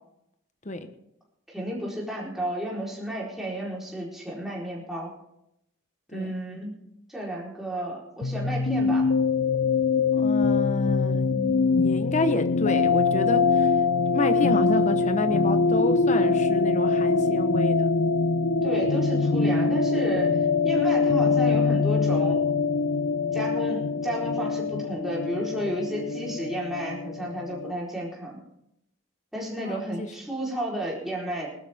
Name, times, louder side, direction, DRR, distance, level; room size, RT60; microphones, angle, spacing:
voice 1, 1.5-5.1 6.1-6.7 7.1-9.1 18.6-22.4 23.3-28.4 29.3-31.5, right 1 dB, ahead, -5 dB, 4.2 m, -32 dB
sound 1, 8.2-27.7, left 4 dB, 70° left, 0.6 m, -23 dB
voice 2, 10.1-13.8 14.1-17.9 29.6-30.1, left 2 dB, 35° left, 9 dB, 1.1 m, -29 dB
21.0 x 12.0 x 3.6 m, 0.80 s
head